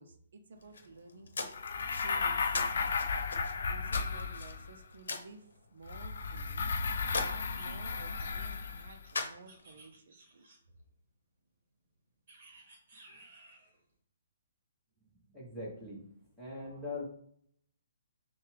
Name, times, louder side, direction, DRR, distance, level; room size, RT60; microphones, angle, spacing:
voice 1, 0.0-1.5 2.0-10.4, right 3 dB, 55° right, 6 dB, 0.5 m, -53 dB
sound 1, 0.6-9.9, left 3 dB, 80° left, 0.9 m, -43 dB
sound 2, 1.5-4.8 5.9-9.0, left 5 dB, 55° left, 0.4 m, -34 dB
sound 3, 7.5-10.8 12.3-13.7, right 2 dB, 35° right, 1.4 m, -57 dB
voice 2, 15.3-16.0 16.4-17.0, left 2 dB, ahead, -7 dB, 1.1 m, -41 dB
6.6 x 2.3 x 3.3 m, 0.65 s
hypercardioid pair, 175°, 0 cm